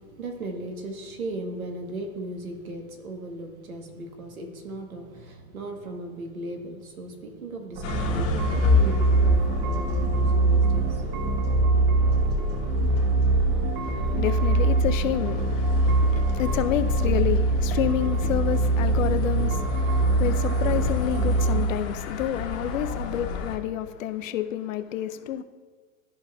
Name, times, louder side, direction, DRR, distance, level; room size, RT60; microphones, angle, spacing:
voice 1, 0.0-11.9, right 2 dB, 85° right, 1.3 m, -37 dB
sound 1, 7.8-23.6, left 4 dB, 35° left, 1.3 m, -31 dB
sound 2, 7.8-21.7, right 2 dB, 35° right, 0.7 m, -23 dB
voice 2, 13.8-25.4, left 11 dB, 70° left, 0.6 m, -29 dB
13.0 x 5.3 x 2.3 m
hypercardioid pair, 105°, 41 cm